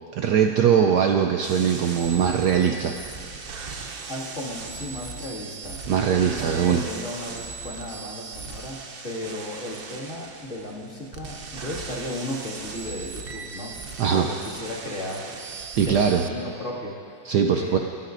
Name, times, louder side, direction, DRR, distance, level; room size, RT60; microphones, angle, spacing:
voice 1, 0.2-2.9 5.9-6.8 14.0-14.3 15.8-16.2 17.2-17.8, right 8 dB, 70° right, 3 dB, 1.1 m, -21 dB
sound 1, 1.4-16.3, right 4 dB, 90° right, 0.5 m, -38 dB
voice 2, 4.1-5.8 6.2-15.4 15.9-17.0 17.5-17.8, left 1 dB, 35° left, -6 dB, 2.4 m, -35 dB
26.5 x 12.5 x 2.6 m, 2.5 s
omnidirectional pair, 2.1 m